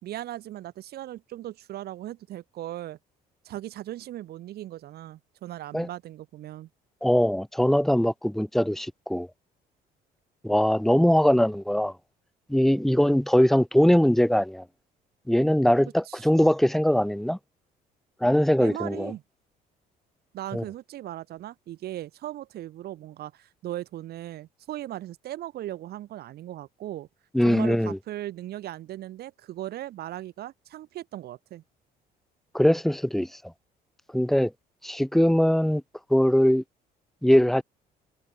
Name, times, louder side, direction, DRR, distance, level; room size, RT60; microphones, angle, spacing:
voice 1, 0.0-3.0 3.4-6.7 16.1-16.3 18.6-19.2 20.3-27.1 27.4-31.6, right 13 dB, 70° right, 4.7 m, -38 dB
voice 2, 7.0-9.3 10.4-11.9 12.5-14.6 15.3-17.4 18.2-19.1 20.5-20.6 27.3-28.0 32.5-33.3 34.1-34.5 34.8-35.8 36.1-36.6 37.2-37.6, equal, ahead, 0.7 m, -21 dB
cardioid pair, 110°, 17 cm